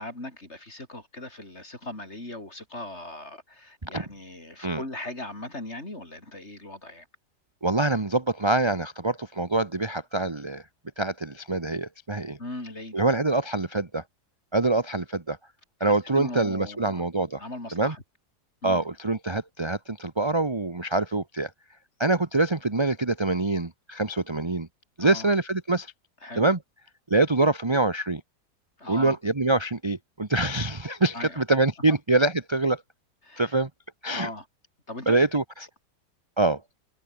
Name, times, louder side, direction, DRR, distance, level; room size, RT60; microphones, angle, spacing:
voice 1, 0.0-7.1 12.4-13.0 15.8-17.0 17.4-18.0 18.6-18.9 25.0-25.3 26.2-26.5 28.8-29.2 31.1-31.4 33.2-33.6 34.1-34.5 34.9-35.1, left 1 dB, 40° left, 6.3 m, -39 dB
voice 2, 7.6-10.6 11.0-12.4 12.9-14.0 14.5-15.4 15.8-17.4 17.7-17.9 18.6-21.5 22.0-24.7 25.0-25.9 26.4-26.6 27.1-28.2 28.9-32.8 33.4-33.7 34.0-34.3 35.1-35.4 36.4-36.6, right 2 dB, 20° right, 1.2 m, -25 dB
omnidirectional pair, 1.8 m